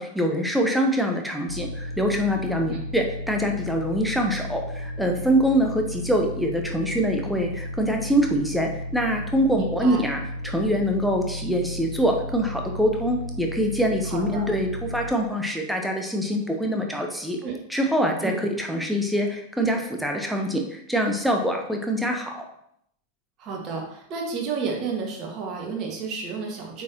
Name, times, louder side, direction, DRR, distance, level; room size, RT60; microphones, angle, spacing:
voice 1, 0.0-17.4 17.7-22.4, equal, ahead, 2 dB, 1.2 m, -24 dB
sound 1, 1.5-15.1, equal, 80° right, 0.5 m, -34 dB
voice 2, 9.5-10.0 14.1-14.5 17.4-17.5 18.2-18.4 23.4-26.8, right 5 dB, 35° right, 0 dB, 2.0 m, -31 dB
8.4 x 6.1 x 3.1 m, 0.72 s
figure-of-eight pair, 90°, 0 cm